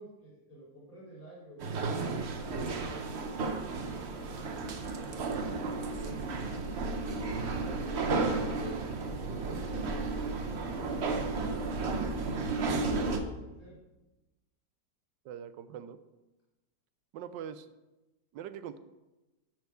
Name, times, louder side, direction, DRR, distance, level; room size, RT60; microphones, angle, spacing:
voice 1, 0.0-2.1 2.8-5.3 7.6-12.2 12.7-13.8, right 1 dB, 5° left, -9 dB, 3.3 m, -51 dB
sound 1, 1.6-13.2, right 3 dB, 45° right, 0.9 m, -33 dB
voice 2, 15.2-16.0 17.1-17.7 18.3-18.8, right 9 dB, 80° right, 12 dB, 1.3 m, -42 dB
10.5 x 4.6 x 6.6 m, 1.0 s
omnidirectional pair, 2.0 m